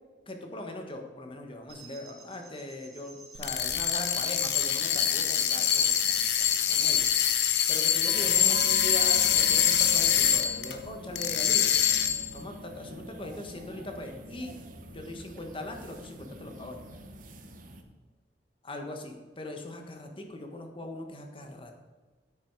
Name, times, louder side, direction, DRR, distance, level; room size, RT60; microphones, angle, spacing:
voice 1, 0.3-7.0 7.7-11.7 12.3-14.6 14.9-17.0 18.6-21.7, left 1 dB, 30° left, 4 dB, 1.4 m, -40 dB
sound 1, 1.7-7.6, right 5 dB, 70° right, 2.6 m, -49 dB
sound 2, 3.4-10.8 11.2-12.3, left 9 dB, 80° left, 1.0 m, -25 dB
sound 3, 8.0-17.8, equal, 50° right, 1.1 m, -43 dB
9.6 x 8.8 x 4.7 m, 1.3 s
head